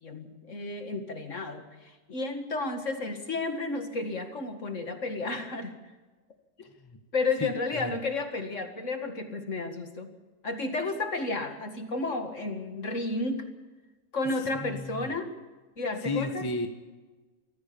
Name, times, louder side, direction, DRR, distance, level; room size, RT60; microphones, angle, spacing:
voice 1, 0.0-5.8 6.6-6.7 7.1-10.1 10.4-13.5 14.1-15.3 15.8-16.5, left 3 dB, 45° left, 6 dB, 2.2 m, -32 dB
voice 2, 7.4-7.9 14.6-15.1 16.0-16.7, left 3 dB, 15° left, 6 dB, 1.4 m, -33 dB
24.0 x 15.5 x 7.0 m, 1.3 s
omnidirectional pair, 1.8 m